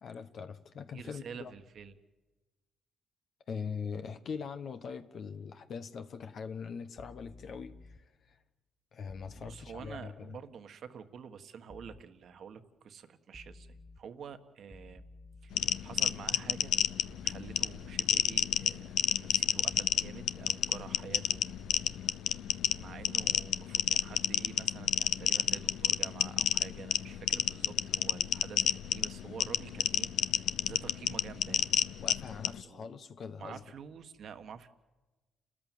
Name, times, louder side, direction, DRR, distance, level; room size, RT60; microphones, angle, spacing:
voice 1, 0.0-1.5 3.5-8.0 8.3-8.4 8.9-10.4 32.0-33.6, left 6 dB, 60° left, 1.1 m, -42 dB
voice 2, 0.9-2.0 9.3-13.7 14.0-15.0 15.4-16.8 17.2-21.4 22.8-31.7 32.3-32.9 33.4-34.7, right 7 dB, 60° right, 1.6 m, -48 dB
sound 1, 7.0-8.0 9.1-10.0 11.7-12.0 13.3-14.0 14.7-16.0 17.1-18.0 19.7-20.0 21.3-22.0 22.7-23.1, left 2 dB, 5° left, 1.0 m, -52 dB
sound 2, 15.5-32.6, left 10 dB, 80° left, 0.7 m, -30 dB
29.5 x 13.5 x 9.3 m
cardioid pair, 90°, 0 cm